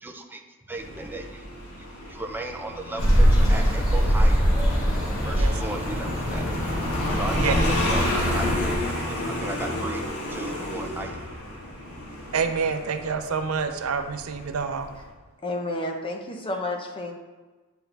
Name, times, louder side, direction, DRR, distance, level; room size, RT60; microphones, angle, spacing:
voice 1, 0.0-0.4 0.7-1.5 2.1-4.5 5.2-6.6 7.1-11.3, right 2 dB, 10° right, 3 dB, 0.5 m, -36 dB
Motorcycle, 0.7-15.1, left 1 dB, 85° left, 1.5 m, -31 dB
sound 1, 3.0-8.8, equal, 70° left, 2.2 m, -22 dB
voice 2, 12.3-14.9, right 5 dB, 70° right, 7 dB, 0.6 m, -27 dB
voice 3, 15.4-17.1, left 2 dB, 25° left, 2 dB, 0.8 m, -30 dB
9.1 x 4.8 x 3.3 m, 1.3 s
head